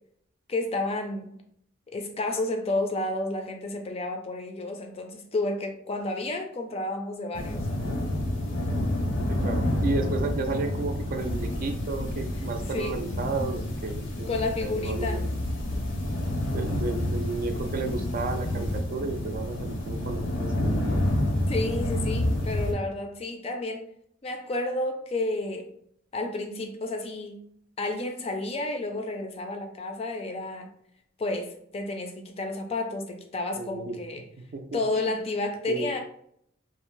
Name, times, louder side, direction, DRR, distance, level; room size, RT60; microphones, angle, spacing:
voice 1, 0.5-1.3 1.9-7.7 12.7-13.1 14.0-15.2 21.5-23.9 24.2-25.7 26.1-27.4 27.8-30.7 31.2-34.3 34.7-36.0, left 2 dB, 30° left, 4 dB, 0.4 m, -31 dB
sound 1, 7.3-22.7, left 1 dB, 70° left, 0.6 m, -29 dB
voice 2, 9.3-15.3 16.5-21.0 33.6-34.0 34.5-35.1 35.7-35.9, right 3 dB, 45° right, 6 dB, 0.4 m, -33 dB
2.5 x 2.0 x 3.0 m, 0.67 s
head